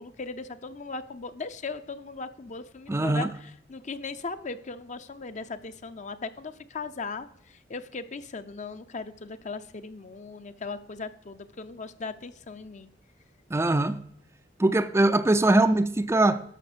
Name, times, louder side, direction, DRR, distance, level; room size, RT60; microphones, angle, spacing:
voice 1, 0.0-12.9, left 4 dB, 40° left, 0.7 m, -38 dB
voice 2, 2.9-3.3 13.5-14.0 14.6-16.4, right 2 dB, 15° right, 0.4 m, -22 dB
12.5 x 6.0 x 6.8 m
head